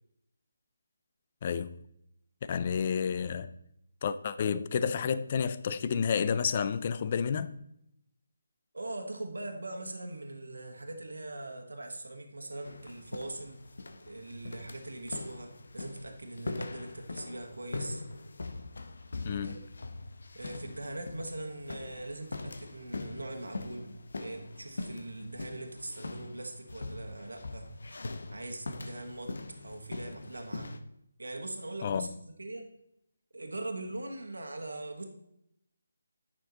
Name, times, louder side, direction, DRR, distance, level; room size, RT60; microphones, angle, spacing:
voice 1, 1.4-1.8 2.4-3.5 4.0-7.6 19.2-19.6 31.8-32.1, left 6 dB, 35° left, 0.5 m, -30 dB
voice 2, 8.7-13.6 14.1-18.0 19.3-19.6 20.3-27.7 28.3-29.3 29.6-30.7 31.2-32.7 33.3-35.0, right 2 dB, 80° right, 1.4 m, -41 dB
sound 1, 12.6-30.8, left 3 dB, 65° left, 0.8 m, -42 dB
9.4 x 6.0 x 3.9 m
figure-of-eight pair, 155°, 0 cm